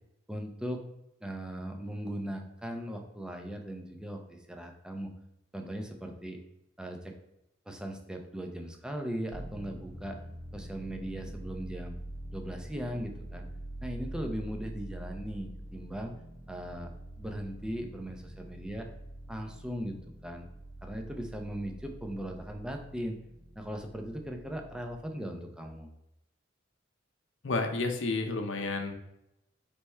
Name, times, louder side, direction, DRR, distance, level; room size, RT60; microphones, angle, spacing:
voice 1, 0.3-0.8 1.2-5.1 5.5-6.4 6.8-7.1 7.7-10.2 10.5-11.9 12.3-13.4 13.8-16.1 16.5-16.9 17.2-18.9 19.3-20.5 20.8-23.2 23.6-25.9, equal, 5° right, 3 dB, 0.5 m, -38 dB
sound 1, 9.3-24.9, right 1 dB, 40° right, 0.7 m, -45 dB
voice 2, 27.4-28.9, left 3 dB, 70° left, 4 dB, 0.6 m, -31 dB
3.4 x 3.3 x 4.3 m, 0.85 s
head